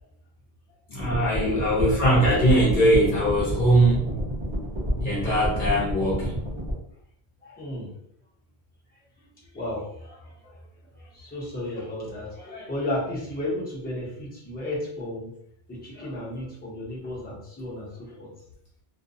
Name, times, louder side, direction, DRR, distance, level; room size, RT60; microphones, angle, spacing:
voice 1, 0.9-4.1 5.0-6.4, right 1 dB, 50° left, -5 dB, 0.9 m, -21 dB
sound 1, 1.0-6.7, equal, 30° right, 0.9 m, -29 dB
voice 2, 7.4-7.9 9.5-10.6 10.9-15.3 15.7-18.3, left 1 dB, 10° left, -8 dB, 0.8 m, -34 dB
2.5 x 2.2 x 2.6 m, 0.69 s
omnidirectional pair, 1.1 m